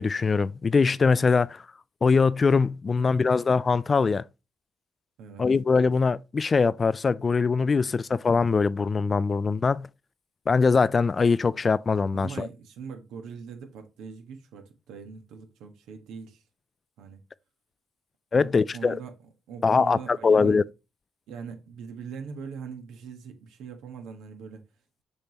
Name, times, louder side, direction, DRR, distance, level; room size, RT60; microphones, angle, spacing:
voice 1, 0.0-1.6 2.0-4.2 5.4-9.9 10.5-12.5 18.3-19.0 19.6-20.6, left 4 dB, 35° left, 0.3 m, -22 dB
voice 2, 12.1-16.4 17.0-17.2 18.3-19.1 19.5-20.6 21.3-24.6, right 6 dB, 85° right, 1.4 m, -41 dB
6.8 x 5.5 x 3.0 m
cardioid pair, 90°, 0 cm